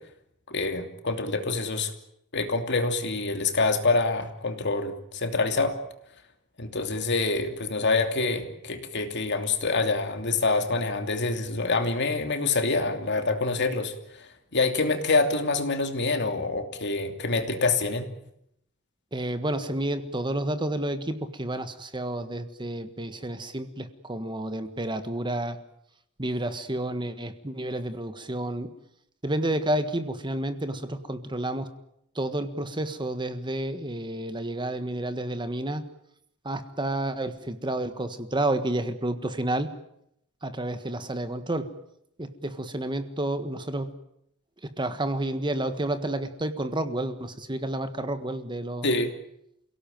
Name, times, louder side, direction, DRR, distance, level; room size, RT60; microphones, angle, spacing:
voice 1, 0.5-1.9 2.3-5.8 6.6-18.1 48.8-49.1, left 3 dB, 55° left, 6 dB, 2.9 m, -26 dB
voice 2, 19.1-25.6 26.2-28.7 29.2-31.7 32.1-35.8 36.4-39.7 40.4-41.7 42.2-43.9 44.8-48.9, right 1 dB, 20° right, 10 dB, 1.5 m, -30 dB
28.5 x 17.5 x 9.2 m, 0.76 s
head